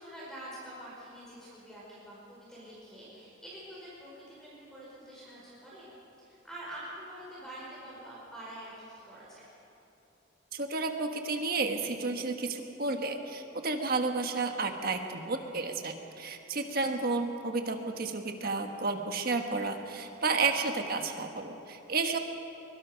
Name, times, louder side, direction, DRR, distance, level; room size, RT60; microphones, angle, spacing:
voice 1, 0.0-5.8 6.2-9.4 16.8-16.9, right 1 dB, 5° left, -7 dB, 5.1 m, -46 dB
voice 2, 10.5-22.2, right 3 dB, 50° right, 5 dB, 1.5 m, -32 dB
23.0 x 22.5 x 5.3 m, 3.0 s
head